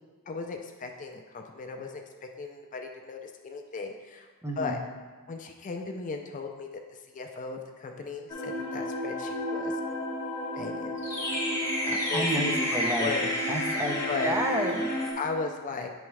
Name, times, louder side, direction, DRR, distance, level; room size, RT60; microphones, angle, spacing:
voice 1, 0.3-4.3 4.6-4.8 5.3-9.7 10.5-11.0 11.8-12.3 12.8-13.3 14.1-14.4 15.2-15.9, left 4 dB, 35° left, 3 dB, 0.4 m, -36 dB
voice 2, 4.4-4.8 12.1-13.1 13.5-14.8, equal, 10° right, 1 dB, 0.6 m, -30 dB
sound 1, 8.3-15.1, left 1 dB, 15° left, 1.2 m, -30 dB
8.9 x 3.5 x 3.2 m, 1.4 s
head